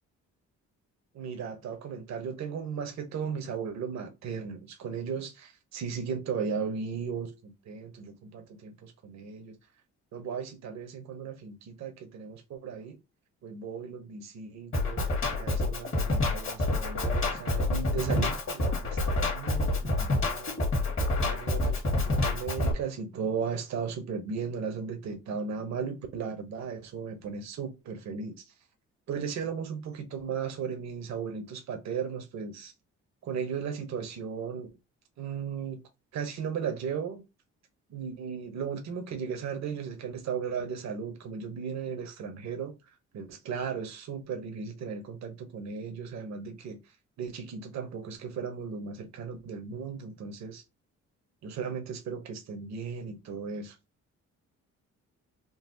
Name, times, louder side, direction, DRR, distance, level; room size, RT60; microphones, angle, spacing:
voice 1, 1.1-9.6 10.1-13.0 13.4-15.0 15.4-20.6 21.1-28.5 29.1-32.7 33.2-34.7 35.2-35.8 36.1-37.2 37.9-42.7 43.1-50.6 51.4-53.8, right 6 dB, 65° right, 0.9 m, -36 dB
Drum kit, 14.7-22.7, left 2 dB, 45° left, 1.4 m, -28 dB
3.9 x 2.3 x 2.6 m
cardioid pair, 90°, 30 cm